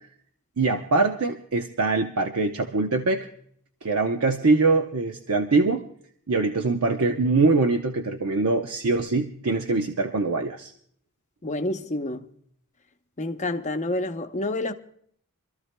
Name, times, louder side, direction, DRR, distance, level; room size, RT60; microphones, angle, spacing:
voice 1, 0.6-3.3 3.8-5.8 6.3-10.7, right 3 dB, 70° right, 0.8 m, -23 dB
voice 2, 11.4-12.3 13.2-14.7, left 2 dB, 30° left, 0.7 m, -28 dB
27.0 x 13.5 x 2.2 m
head